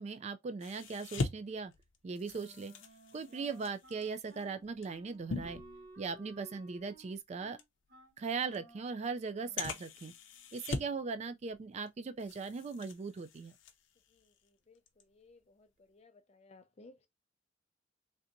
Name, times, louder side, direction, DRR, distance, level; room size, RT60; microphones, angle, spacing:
voice 1, 0.0-1.7 2.0-2.7 3.1-5.6 6.0-7.6 8.2-10.1 10.5-13.5, right 4 dB, 35° right, 0.3 m, -39 dB
sound 1, 0.6-6.4 6.8-7.0 7.6-7.7 8.5-8.6 9.6-11.1 11.4-11.9 12.2-14.4 14.8-15.0, left 3 dB, 80° left, 0.6 m, -42 dB
Wind instrument woodwind instrument, 2.3-9.9, right 1 dB, 50° right, 0.9 m, -57 dB
voice 2, 14.1-17.1, left 3 dB, 35° left, 0.5 m, -61 dB
3.3 x 2.8 x 2.6 m
head